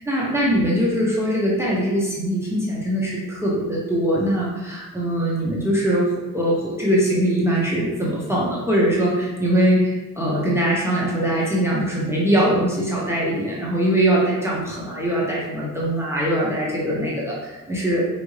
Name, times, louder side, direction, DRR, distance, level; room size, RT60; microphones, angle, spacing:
voice 1, 0.0-6.1 6.3-18.0, right 1 dB, 5° right, -6 dB, 0.7 m, -22 dB
4.4 x 2.5 x 3.2 m, 1.1 s
cardioid pair, 105°, 35 cm